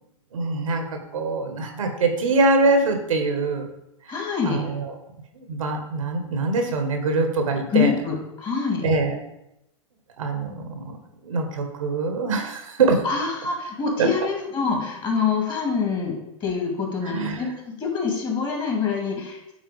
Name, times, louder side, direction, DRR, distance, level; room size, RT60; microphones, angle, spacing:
voice 1, 0.3-3.7 4.4-4.9 5.3-7.9 8.8-9.2 10.2-11.0 11.2-13.0 14.0-14.1 17.0-17.5, right 3 dB, 80° right, 5 dB, 1.5 m, -23 dB
voice 2, 4.1-4.7 7.7-8.9 13.0-19.5, left 5 dB, 25° left, 1 dB, 2.3 m, -25 dB
8.9 x 4.0 x 4.9 m, 0.87 s
hypercardioid pair, 110°, 17 cm